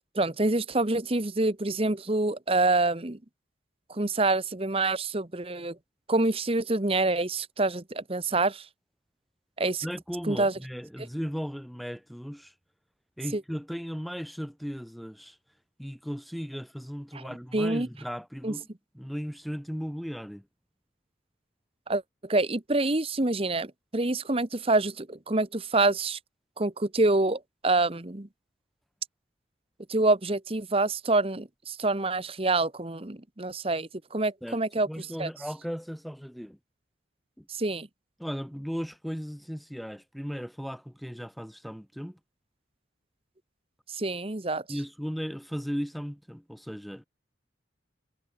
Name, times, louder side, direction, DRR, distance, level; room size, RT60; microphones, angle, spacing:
voice 1, 0.0-3.2 3.9-5.8 6.1-8.7 9.6-9.8 10.3-10.5 13.3-13.4 17.1-17.2 17.5-17.9 18.4-18.5 21.9-26.2 26.6-28.3 29.9-35.3 37.5-37.9 43.9-44.6, right 2 dB, 30° right, 1.2 m, -27 dB
voice 2, 9.8-12.5 13.2-15.4 15.8-18.7 18.9-20.4 34.4-34.6 34.8-36.6 37.4-37.5 38.2-42.2 44.7-47.1, equal, ahead, 3.1 m, -36 dB
head